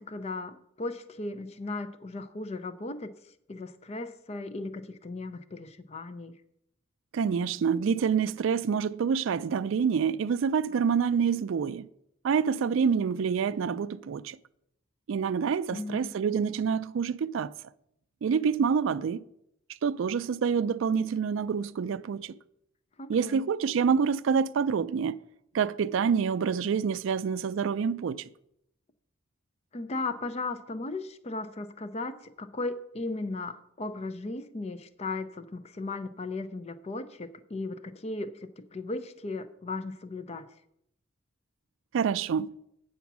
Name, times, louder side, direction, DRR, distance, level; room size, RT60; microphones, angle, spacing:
voice 1, 0.0-6.3 15.7-16.1 23.0-23.4 29.7-40.5, left 3 dB, 30° left, 0.4 m, -36 dB
voice 2, 7.1-11.9 12.2-14.4 15.1-17.5 18.2-19.2 19.8-22.4 23.1-25.2 25.5-28.3 41.9-42.6, right 6 dB, 70° right, 0.3 m, -27 dB
8.2 x 7.0 x 6.0 m
head